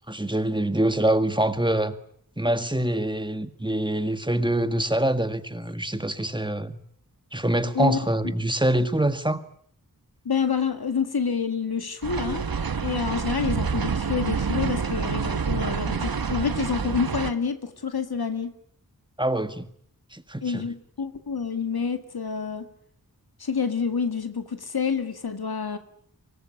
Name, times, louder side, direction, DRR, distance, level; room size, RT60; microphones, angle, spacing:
voice 1, 0.1-1.9 2.4-6.8 7.3-9.4 19.2-19.7 20.1-20.6, right 1 dB, 10° right, 1.7 m, -25 dB
voice 2, 10.3-12.4 12.8-18.5 20.4-22.7 23.4-25.8, left 6 dB, 80° left, 2.0 m, -28 dB
sound 1, 12.0-17.3, right 5 dB, 70° right, 1.3 m, -27 dB
24.5 x 19.0 x 9.9 m
wide cardioid pair, 70°, 37 cm